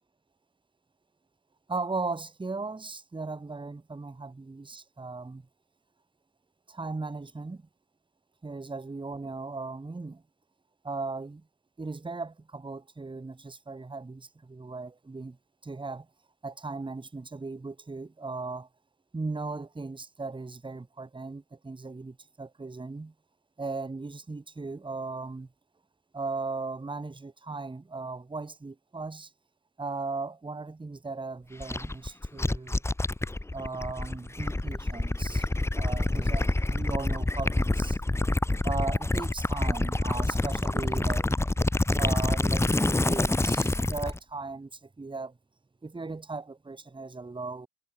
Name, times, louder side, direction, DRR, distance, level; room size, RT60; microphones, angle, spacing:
voice 1, 1.7-5.5 6.7-7.6 8.4-10.2 10.8-11.4 11.8-15.4 15.6-16.1 16.4-18.7 19.1-23.1 23.6-25.5 26.1-29.3 29.8-32.8 33.5-35.5 35.7-45.4 45.8-47.7, right 3 dB, 15° right, 1.4 m, -37 dB
Gurgling / Liquid, 31.6-44.2, left 2 dB, 10° left, 0.9 m, -27 dB
supercardioid pair, 80°, 33 cm